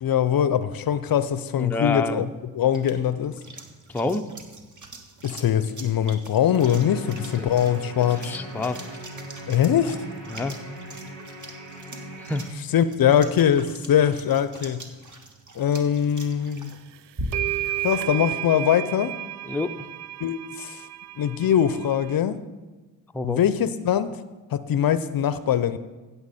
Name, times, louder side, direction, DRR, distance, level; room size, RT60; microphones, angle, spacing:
voice 1, 0.0-2.3 2.6-3.3 5.2-8.2 9.5-9.9 12.7-14.8 15.6-16.7 17.8-19.1 20.2-20.8 21.2-22.4 23.2-24.2 24.5-25.8, left 9 dB, 45° left, 14 dB, 0.6 m, -22 dB
voice 2, 1.6-2.2 3.9-4.2 7.4-7.5 8.2-9.0 10.3-10.6 12.2-12.5 19.4-19.7 23.1-23.4, left 3 dB, 5° left, 6 dB, 0.6 m, -28 dB
sound 1, 2.1-17.7, right 1 dB, 35° right, 1.8 m, -43 dB
sound 2, 6.6-12.5, equal, 80° right, 2.9 m, -39 dB
sound 3, 16.7-16.8 17.3-22.2, right 14 dB, 60° right, 0.6 m, -32 dB
15.5 x 7.0 x 4.3 m, 1.2 s
hypercardioid pair, 50°, 49 cm